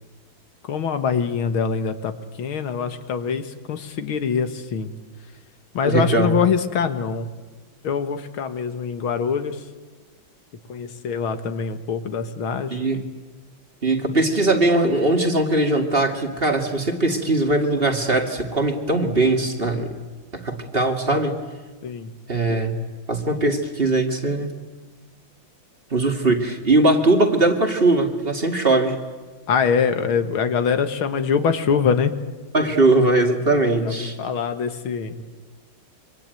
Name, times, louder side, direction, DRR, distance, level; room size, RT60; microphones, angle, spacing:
voice 1, 0.6-2.1 2.4-4.9 5.7-7.3 7.8-9.6 10.7-13.0 21.8-22.1 29.5-32.1 33.8-35.2, left 6 dB, 85° left, 9 dB, 2.4 m, -24 dB
voice 2, 5.8-6.4 12.7-13.0 13.8-19.9 20.3-21.4 22.3-22.7 23.1-24.5 25.9-29.0 32.5-34.2, right 2 dB, 30° right, 5 dB, 2.3 m, -20 dB
26.0 x 24.5 x 9.2 m, 1.4 s
omnidirectional pair, 2.2 m